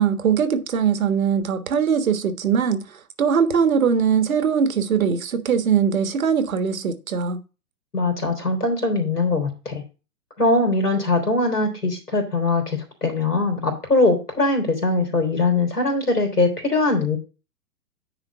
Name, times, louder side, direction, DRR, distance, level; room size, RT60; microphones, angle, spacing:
voice 1, 0.0-2.8 3.2-7.4, right 7 dB, 60° right, 1.5 m, -21 dB
voice 2, 7.9-9.8 10.4-17.2, left 2 dB, 85° left, 3.4 m, -21 dB
9.8 x 3.8 x 6.1 m
figure-of-eight pair, 110°, 45 cm